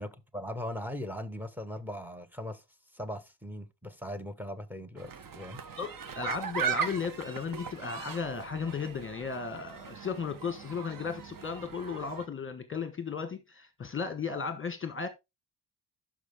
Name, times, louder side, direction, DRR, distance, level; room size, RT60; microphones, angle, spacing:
voice 1, 0.0-2.6 2.9-5.6, equal, 5° right, 1.1 m, -39 dB
sound 1, 5.0-12.3, right 7 dB, 55° right, 1.1 m, -38 dB
voice 2, 5.8-15.1, left 5 dB, 30° left, 1.3 m, -35 dB
12.5 x 5.2 x 3.6 m
wide cardioid pair, 135°, 41 cm